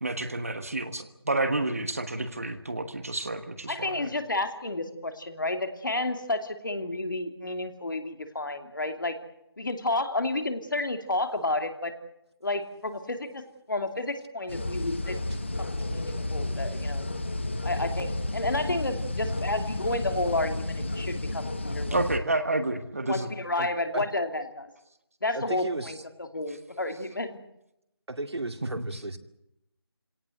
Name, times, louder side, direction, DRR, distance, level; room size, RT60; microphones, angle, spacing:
voice 1, 0.0-4.1 21.9-23.3 28.8-28.9, right 2 dB, 35° right, 9 dB, 1.4 m, -30 dB
voice 2, 3.7-9.2 9.6-11.9 12.4-13.4 13.7-15.2 15.6-17.0 17.6-22.0 23.1-24.7 25.2-26.0 26.3-27.3, left 2 dB, 50° left, 7 dB, 2.7 m, -31 dB
sound 1, 14.5-22.2, left 2 dB, 25° left, 1.3 m, -32 dB
voice 3, 25.3-26.0 28.1-29.2, right 2 dB, 70° right, 7 dB, 2.4 m, -34 dB
27.5 x 18.0 x 7.9 m, 0.84 s
figure-of-eight pair, 175°, 14 cm